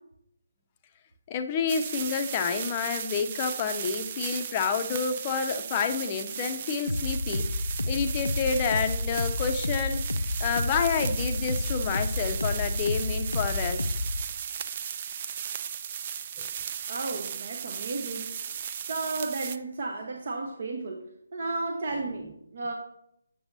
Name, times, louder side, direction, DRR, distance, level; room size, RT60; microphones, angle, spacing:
voice 1, 1.3-7.6 7.9-13.9, left 6 dB, 25° left, 6 dB, 0.5 m, -29 dB
sound 1, 1.7-19.6, right 8 dB, 35° right, 0.3 m, -36 dB
sound 2, 6.9-14.3, left 2 dB, 85° left, 0.4 m, -30 dB
voice 2, 16.9-18.3 18.8-21.0 21.3-22.7, right 3 dB, 50° right, 3 dB, 0.8 m, -33 dB
7.8 x 6.9 x 2.7 m, 0.75 s
figure-of-eight pair, 150°, 0 cm